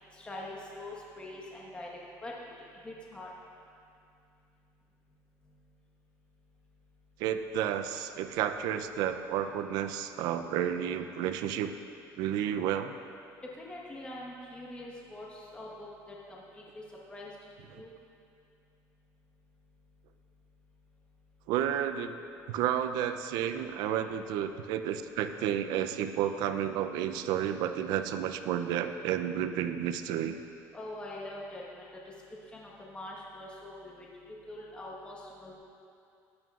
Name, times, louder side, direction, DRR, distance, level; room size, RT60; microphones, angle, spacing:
voice 1, 0.2-1.9 2.2-2.5 2.8-3.3 13.6-16.8 17.1-17.3 17.7-17.9 30.7-31.9 32.5-35.6, left 1 dB, 15° left, -4 dB, 1.3 m, -44 dB
voice 2, 7.2-11.7 12.2-12.9 21.5-22.2 22.5-30.4, right 10 dB, 80° right, 9 dB, 0.5 m, -31 dB
14.5 x 11.0 x 2.4 m, 2.5 s
cardioid pair, 125°, 7 cm